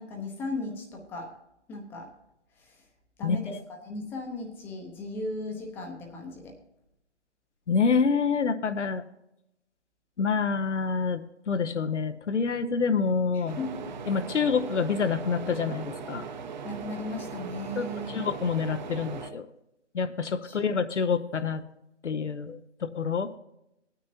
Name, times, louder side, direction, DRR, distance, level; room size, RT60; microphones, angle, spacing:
voice 1, 0.0-1.3 1.7-2.1 2.6-2.8 3.2-6.5 13.3-13.9 16.6-18.2 20.4-20.6, left 2 dB, 5° left, 2 dB, 0.7 m, -36 dB
voice 2, 3.2-3.6 7.7-9.0 10.2-13.6 14.1-16.3 17.8-19.5 19.9-21.6 22.0-23.3, left 5 dB, 85° left, 9 dB, 0.9 m, -27 dB
sound 1, 13.5-19.3, right 6 dB, 40° right, 0.9 m, -39 dB
17.5 x 9.4 x 2.8 m, 0.84 s
hypercardioid pair, 150°, 35 cm